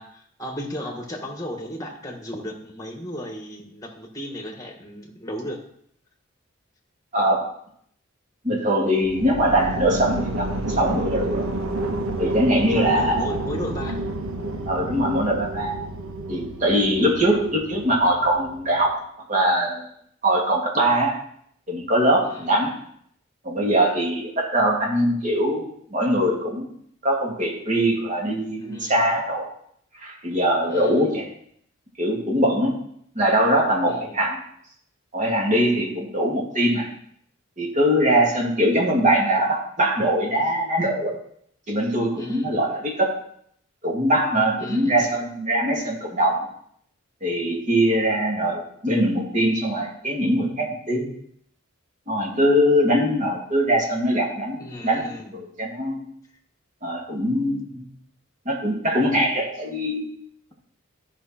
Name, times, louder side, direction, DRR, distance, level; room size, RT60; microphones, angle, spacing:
voice 1, 0.0-5.6 12.7-14.0 22.2-22.5 28.6-29.0 30.7-31.2 33.8-34.2 42.2-42.6 44.6-45.1 54.6-55.3, equal, 15° left, 2 dB, 1.5 m, -35 dB
voice 2, 7.1-7.5 8.4-11.5 12.2-13.4 14.7-15.7 16.3-19.0 19.3-19.9 20.2-21.2 21.7-22.8 23.4-26.7 27.0-29.5 30.0-31.3 32.0-32.7 33.1-34.4 35.1-36.9 37.6-41.1 41.7-43.2 43.8-46.5 47.2-51.1 52.1-56.0 56.8-57.9 58.5-60.1, right 1 dB, 35° right, -2 dB, 2.4 m, -22 dB
sound 1, 9.0-18.9, right 1 dB, 85° right, 1.3 m, -30 dB
14.0 x 5.9 x 4.4 m, 0.67 s
head